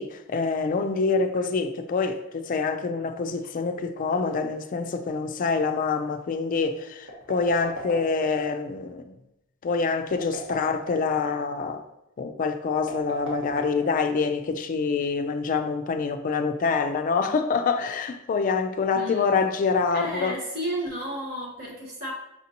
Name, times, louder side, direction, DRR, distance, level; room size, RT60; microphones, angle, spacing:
voice 1, 0.0-9.2 9.6-11.8 12.2-20.4, left 4 dB, 40° left, 0.3 m, -26 dB
sound 1, 7.0-8.5 10.0-11.2 12.8-14.3, equal, 85° right, 1.2 m, -37 dB
voice 2, 18.9-19.3 19.9-22.1, right 1 dB, 50° right, 1.0 m, -32 dB
5.7 x 2.7 x 2.8 m
head